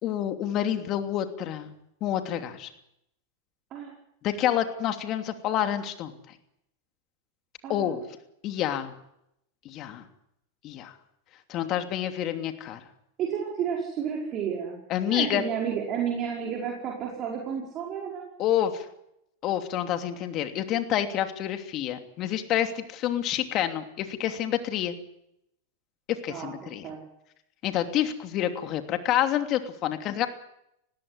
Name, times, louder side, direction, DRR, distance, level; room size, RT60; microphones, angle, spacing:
voice 1, 0.0-1.7 2.0-2.7 4.2-6.1 7.7-8.0 8.4-8.9 9.6-10.0 10.6-10.9 11.5-12.8 14.9-15.4 18.4-18.8 19.4-24.9 26.1-26.9 27.6-30.3, left 11 dB, 40° left, 7 dB, 3.0 m, -28 dB
voice 2, 7.6-8.0 13.2-14.8 15.1-18.2 26.3-27.0, right 7 dB, 35° right, -1 dB, 5.0 m, -31 dB
20.0 x 16.5 x 9.9 m, 0.79 s
hypercardioid pair, 115°, 0 cm